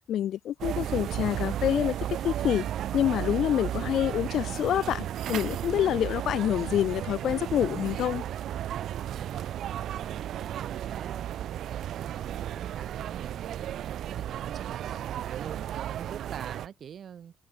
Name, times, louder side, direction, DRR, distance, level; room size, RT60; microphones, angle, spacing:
voice 1, 0.1-2.0 2.2-2.7 2.9-8.2, left 11 dB, 75° left, 1.5 m, -27 dB
sound 1, 0.6-16.7, right 11 dB, 75° right, 0.7 m, -34 dB
voice 2, 9.1-10.2 10.5-11.3 11.7-17.3, right 8 dB, 60° right, 2.4 m, -45 dB
cardioid pair, 90°, 0 cm